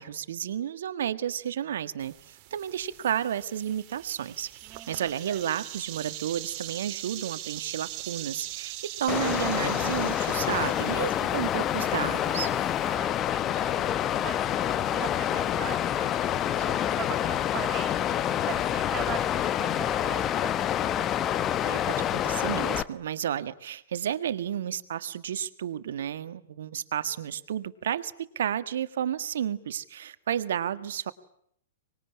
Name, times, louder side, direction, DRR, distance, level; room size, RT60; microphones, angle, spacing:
voice 1, 0.0-4.5 4.9-12.5 21.0-21.1 21.6-31.1, right 10 dB, 60° right, 13 dB, 1.7 m, -32 dB
sound 1, 2.0-13.0, right 15 dB, 40° right, 2.1 m, -42 dB
voice 2, 4.6-5.4 12.8-20.6, right 9 dB, 25° right, 4 dB, 4.5 m, -41 dB
Water, 9.1-22.8, left 11 dB, 25° left, 1.1 m, -27 dB
25.0 x 21.5 x 9.8 m, 0.70 s
figure-of-eight pair, 110°, 0 cm